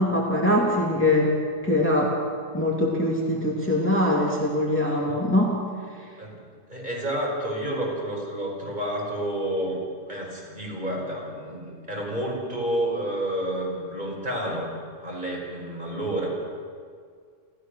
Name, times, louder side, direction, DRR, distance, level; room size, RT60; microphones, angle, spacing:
voice 1, 0.0-1.3 1.6-2.1 2.5-5.6, left 1 dB, 10° left, -3 dB, 2.7 m, -22 dB
voice 2, 6.7-9.8 10.1-14.7 15.0-16.3, right 1 dB, 35° right, -3 dB, 5.5 m, -30 dB
29.5 x 14.0 x 6.5 m, 2.1 s
omnidirectional pair, 1.3 m